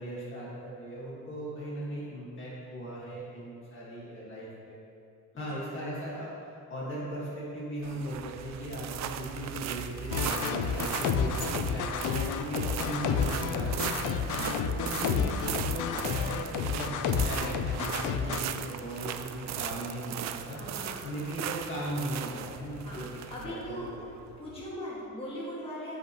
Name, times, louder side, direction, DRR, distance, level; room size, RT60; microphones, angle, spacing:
voice 1, 0.0-4.8 5.3-20.6 21.0-23.1 23.4-23.8, equal, 35° left, -7 dB, 1.8 m, -38 dB
sound 1, 7.8-24.7, right 10 dB, 55° right, 0.4 m, -38 dB
sound 2, 10.1-18.4, left 7 dB, 60° left, 0.5 m, -30 dB
voice 2, 14.3-14.6 20.5-21.1 22.8-24.0 24.4-26.0, equal, 15° left, -7 dB, 1.9 m, -40 dB
15.5 x 5.7 x 3.0 m, 2.6 s
cardioid pair, 170°, 34 cm